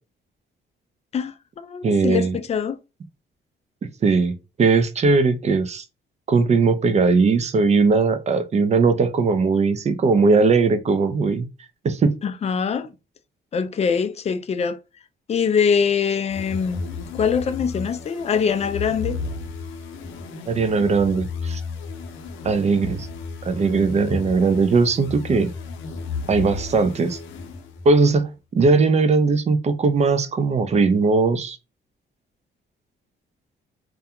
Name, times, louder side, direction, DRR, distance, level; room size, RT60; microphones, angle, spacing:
voice 1, 1.1-2.8 12.2-12.9 13.5-14.8 15.3-16.8 17.1-19.2, left 6 dB, 35° left, 0.4 m, -23 dB
voice 2, 1.8-2.4 4.0-5.8 6.3-11.5 11.8-12.1 20.5-21.6 22.4-23.1 23.4-25.5 26.3-27.2 27.9-31.6, right 4 dB, 35° right, 0.4 m, -19 dB
sound 1, 16.3-28.0, left 4 dB, 80° left, 0.6 m, -33 dB
2.4 x 2.2 x 2.8 m
cardioid pair, 90°, 20 cm